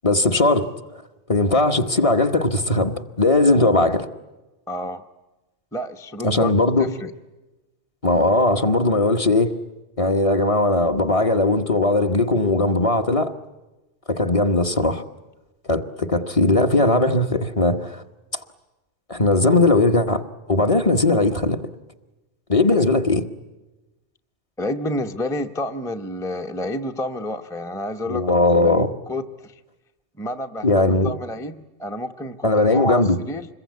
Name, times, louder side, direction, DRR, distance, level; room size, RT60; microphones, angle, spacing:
voice 1, 0.0-0.7 1.3-4.1 6.2-6.9 8.0-9.5 10.0-13.3 14.1-15.0 15.7-18.0 19.1-20.2 20.5-21.6 22.5-23.2 28.1-28.9 30.6-31.1 32.4-33.2, left 2 dB, 30° left, 1.2 m, -19 dB
voice 2, 4.7-5.1 5.7-7.1 22.8-22.9 24.6-28.2 28.5-29.6 30.2-33.5, left 1 dB, 5° left, 0.8 m, -30 dB
26.5 x 22.0 x 9.4 m
omnidirectional pair, 1.2 m